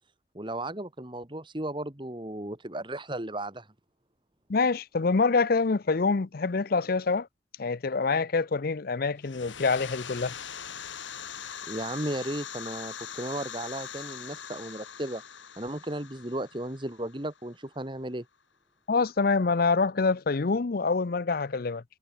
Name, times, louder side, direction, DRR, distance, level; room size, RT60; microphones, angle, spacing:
voice 1, 0.3-3.7 11.7-15.2 15.6-18.3, right 1 dB, 25° right, 2.0 m, -35 dB
voice 2, 4.5-7.3 7.6-10.3 18.9-21.8, left 4 dB, 50° left, 0.6 m, -26 dB
sound 1, 9.2-17.7, left 8 dB, 75° left, 2.6 m, -42 dB
head